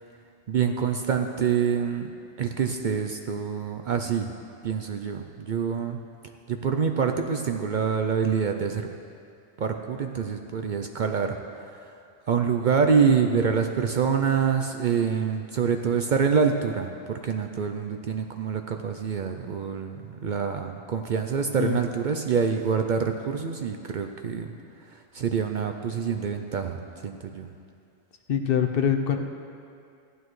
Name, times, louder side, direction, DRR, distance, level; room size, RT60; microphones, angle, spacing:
voice 1, 0.5-2.1 2.4-4.3 4.6-6.0 6.5-8.9 9.6-11.4 12.3-24.5 24.9-26.8 27.0-27.5, right 6 dB, 55° right, 5 dB, 0.6 m, -26 dB
voice 2, 28.3-29.2, left 8 dB, 60° left, 5 dB, 0.8 m, -24 dB
15.5 x 11.0 x 3.1 m, 2.4 s
omnidirectional pair, 1.1 m